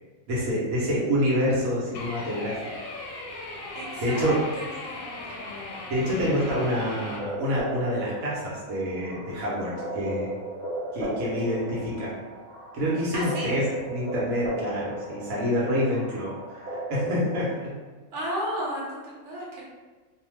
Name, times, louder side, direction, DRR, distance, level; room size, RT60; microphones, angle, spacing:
voice 1, 0.3-2.6 4.0-4.4 5.9-10.3 10.9-12.1 12.7-17.8, equal, 85° right, -6 dB, 1.2 m, -27 dB
sound 1, 1.9-7.2, left 2 dB, 90° left, 1.1 m, -38 dB
voice 2, 3.7-5.0 5.5-5.6 13.1-13.5 18.1-19.6, equal, 65° right, -5 dB, 1.1 m, -33 dB
sound 2, 7.2-17.5, right 1 dB, 45° right, 0.9 m, -35 dB
2.7 x 2.0 x 3.1 m, 1.3 s
omnidirectional pair, 1.4 m